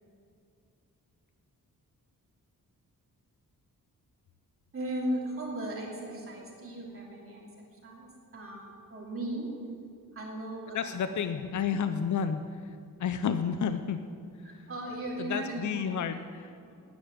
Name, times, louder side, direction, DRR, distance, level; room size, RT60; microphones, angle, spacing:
voice 1, 4.7-9.5 10.1-11.1 14.4-15.8 16.7-16.8, right 1 dB, 40° right, -4 dB, 2.9 m, -37 dB
voice 2, 10.7-12.4 13.0-14.0 14.5-14.7 15.2-16.5, left 7 dB, 60° left, 10 dB, 0.6 m, -31 dB
9.9 x 9.4 x 9.6 m, 2.5 s
wide cardioid pair, 125°, 35 cm